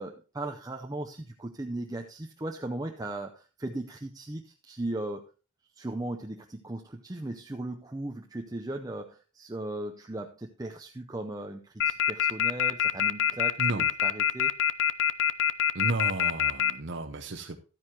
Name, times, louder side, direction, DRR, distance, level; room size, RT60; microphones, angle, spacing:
voice 1, 0.0-5.2 5.8-13.6 14.0-14.5, right 2 dB, 15° right, 3 dB, 0.6 m, -37 dB
sound 1, 11.8-16.7, left 9 dB, 60° left, 0.5 m, -24 dB
voice 2, 13.6-13.9 15.7-17.6, right 2 dB, 55° right, 4 dB, 0.8 m, -33 dB
12.5 x 9.3 x 2.9 m, 0.34 s
head